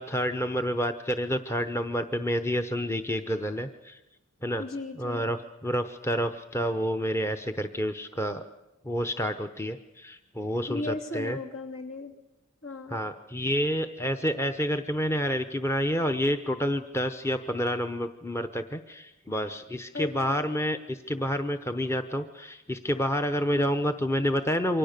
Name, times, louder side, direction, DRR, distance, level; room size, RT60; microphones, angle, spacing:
voice 1, 0.0-4.0 4.4-4.7 5.0-8.4 8.8-11.4 12.9-24.8, equal, 10° left, 7 dB, 0.8 m, -29 dB
voice 2, 4.6-5.3 10.7-12.1 12.6-13.0 19.9-20.4 23.5-23.7, left 3 dB, 65° left, 5 dB, 3.0 m, -36 dB
28.0 x 24.5 x 6.7 m, 0.98 s
head